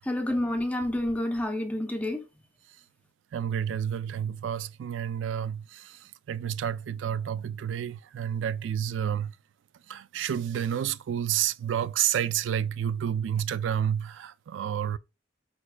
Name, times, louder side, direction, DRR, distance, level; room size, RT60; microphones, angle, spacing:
voice 1, 0.0-2.2, left 1 dB, 10° left, 0.5 m, -29 dB
voice 2, 3.3-6.0 6.3-9.3 9.9-15.0, right 9 dB, 75° right, 0.3 m, -30 dB
4.4 x 4.2 x 2.2 m
head